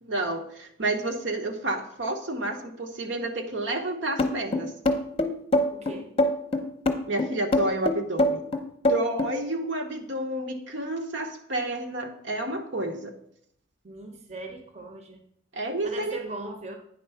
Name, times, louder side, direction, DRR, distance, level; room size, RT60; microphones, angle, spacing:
voice 1, 0.0-4.7 7.1-8.4 8.9-13.1 15.5-16.2, right 2 dB, 65° right, 4 dB, 1.0 m, -30 dB
sound 1, 4.2-9.3, left 1 dB, 30° left, 0.7 m, -24 dB
voice 2, 5.7-6.1 13.8-15.2 15.8-16.8, right 2 dB, 35° right, 3 dB, 0.9 m, -39 dB
9.2 x 4.4 x 5.7 m, 0.67 s
head